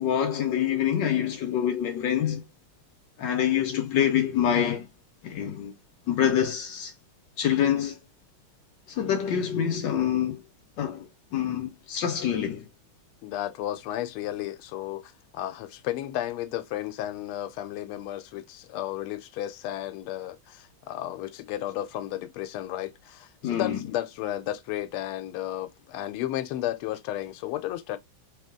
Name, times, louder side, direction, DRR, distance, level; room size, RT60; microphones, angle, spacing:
voice 1, 0.0-2.4 3.2-4.9 5.2-5.7 6.1-6.9 7.4-8.0 8.9-10.4 10.8-11.1 11.3-12.6 23.4-23.8, left 9 dB, 70° left, 1.2 m, -26 dB
voice 2, 13.2-28.0, left 13 dB, 85° left, 1.5 m, -33 dB
3.9 x 2.7 x 3.6 m
omnidirectional pair, 2.3 m